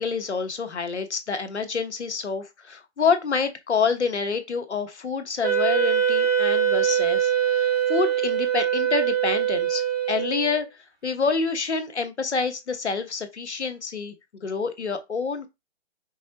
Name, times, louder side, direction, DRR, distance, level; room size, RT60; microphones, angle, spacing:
voice 1, 0.0-9.8 10.1-10.7 11.0-14.1 14.4-15.5, left 5 dB, 80° left, 1.1 m, -27 dB
Wind instrument woodwind instrument, 5.4-10.6, right 9 dB, 25° right, 1.1 m, -23 dB
5.3 x 3.2 x 2.8 m
figure-of-eight pair, 145°, 33 cm